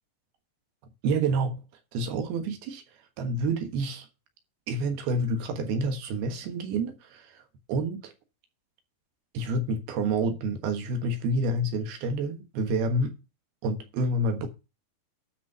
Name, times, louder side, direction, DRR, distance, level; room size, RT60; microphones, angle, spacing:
voice 1, 1.0-1.5 1.9-2.8 3.2-4.1 4.7-7.4 7.7-8.1 9.3-13.1 13.6-14.5, right 2 dB, 75° right, 3.2 m, -28 dB
12.5 x 6.3 x 5.5 m
omnidirectional pair, 4.6 m